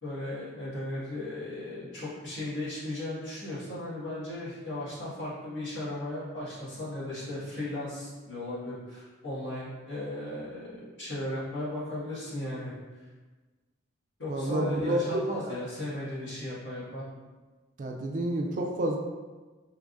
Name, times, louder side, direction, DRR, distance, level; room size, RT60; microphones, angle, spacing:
voice 1, 0.0-12.7 14.2-17.0, left 1 dB, 60° left, -9 dB, 1.5 m, -36 dB
voice 2, 14.3-15.6 17.8-19.0, right 1 dB, 40° right, 2 dB, 0.3 m, -29 dB
3.3 x 3.3 x 2.5 m, 1.3 s
head